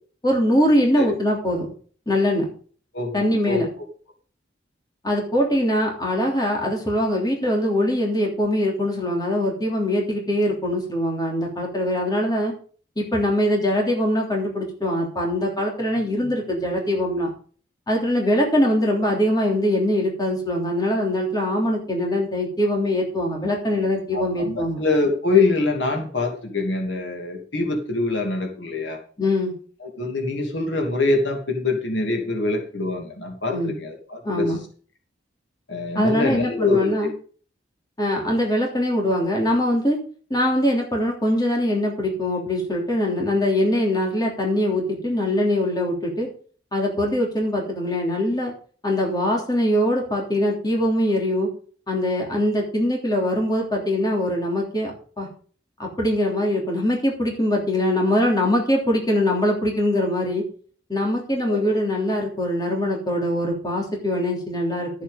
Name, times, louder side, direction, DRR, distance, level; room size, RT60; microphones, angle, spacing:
voice 1, 0.2-1.7 2.1-2.5 3.1-3.7 5.0-12.5 13.0-17.3 17.9-24.8 29.2-29.5 33.5-33.7 34.2-34.6 35.9-37.1 38.0-40.0 40.3-46.3 46.7-48.5 48.8-51.5 51.9-55.3 55.8-60.4 60.9-64.9, left 1 dB, 20° left, 0 dB, 3.2 m, -22 dB
voice 2, 2.9-3.6 18.3-18.4 24.1-29.0 29.8-34.5 35.7-36.9 61.5-61.8, left 3 dB, 80° left, 2 dB, 2.6 m, -24 dB
12.5 x 7.4 x 5.2 m, 0.43 s
head